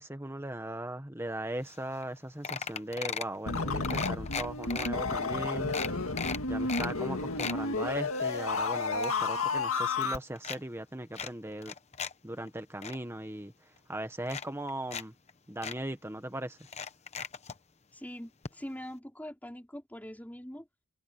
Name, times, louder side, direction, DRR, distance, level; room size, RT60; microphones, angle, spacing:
voice 1, 0.0-5.8 6.5-11.7 12.2-15.1 15.5-16.6, right 1 dB, 10° right, 1.2 m, -38 dB
sound 1, 1.7-1.8 2.0-2.2 2.4-3.4 3.8-4.9 5.3-5.4 5.7-6.9 7.2-7.6 8.1-9.6 9.9-10.6 11.1-12.1 12.5-13.0 13.8-13.9 14.2-15.0 15.3-15.4 15.6-15.8 16.6-17.6 18.4-18.5 18.8-18.9, left 6 dB, 30° left, 1.0 m, -37 dB
sound 2, 3.5-10.2, left 3 dB, 80° left, 2.0 m, -31 dB
voice 2, 17.9-20.7, equal, 10° left, 5.0 m, -43 dB
head